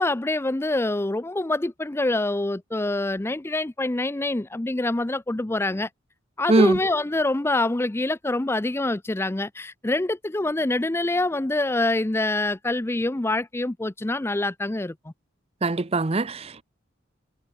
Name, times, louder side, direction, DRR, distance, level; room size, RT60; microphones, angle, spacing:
voice 1, 0.0-5.9 6.4-14.9, left 2 dB, 10° left, 0.4 m, -25 dB
voice 2, 6.5-6.8 15.6-16.6, right 2 dB, 30° right, 0.7 m, -21 dB
head